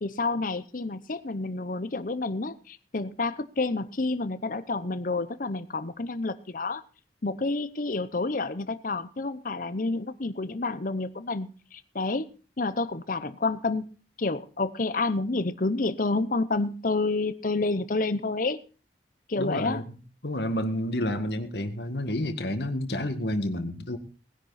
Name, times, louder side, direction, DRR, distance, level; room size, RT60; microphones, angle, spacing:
voice 1, 0.0-6.8 7.2-12.3 12.6-13.8 14.2-18.6 19.3-19.8 21.0-21.2, left 3 dB, 50° left, 14 dB, 0.8 m, -29 dB
voice 2, 19.4-20.0 20.2-24.0, left 1 dB, 65° left, 8 dB, 1.9 m, -30 dB
19.5 x 10.5 x 4.2 m, 0.37 s
head